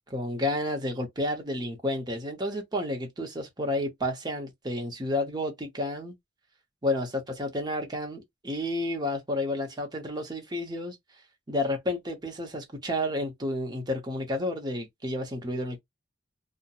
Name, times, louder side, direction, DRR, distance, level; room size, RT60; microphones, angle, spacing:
voice 1, 0.1-6.1 6.8-11.0 11.5-15.8, left 1 dB, 25° right, 0.7 m, -31 dB
2.8 x 2.1 x 2.3 m
head